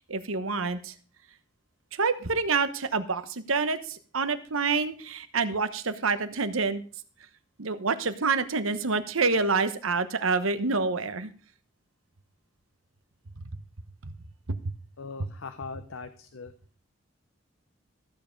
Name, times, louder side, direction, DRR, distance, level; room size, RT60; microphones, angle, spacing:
voice 1, 0.1-0.9 1.9-6.8 7.6-11.3 14.5-14.7, right 4 dB, 90° right, 11 dB, 1.0 m, -27 dB
voice 2, 15.0-16.5, left 4 dB, 80° left, 9 dB, 0.7 m, -40 dB
14.5 x 7.2 x 5.2 m, 0.42 s
head